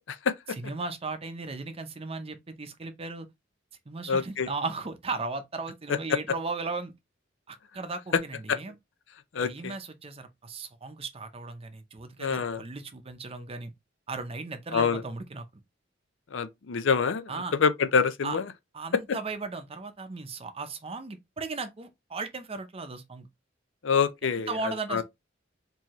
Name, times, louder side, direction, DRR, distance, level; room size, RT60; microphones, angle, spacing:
voice 1, 0.6-3.3 3.9-6.9 7.5-8.7 9.4-13.7 14.1-15.4 17.3-17.5 18.2-18.4 18.7-23.3 24.2-25.0, right 3 dB, 30° right, 0.6 m, -36 dB
voice 2, 4.1-4.5 9.3-9.7 12.2-12.6 14.7-15.0 16.3-17.3 17.6-18.4 23.8-24.5 24.9-25.0, left 5 dB, 75° left, 0.5 m, -26 dB
4.5 x 2.8 x 3.0 m
head